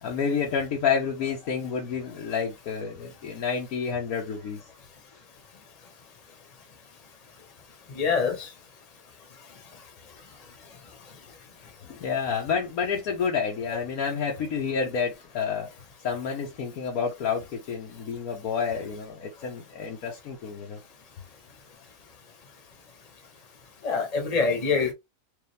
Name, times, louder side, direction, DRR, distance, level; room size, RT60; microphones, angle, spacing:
voice 1, 0.0-4.6 11.9-15.7 16.0-20.8, left 6 dB, 60° left, 1.3 m, -29 dB
voice 2, 7.9-8.5 23.8-24.9, left 5 dB, 25° left, 1.2 m, -25 dB
4.9 x 2.6 x 3.3 m
omnidirectional pair, 1.8 m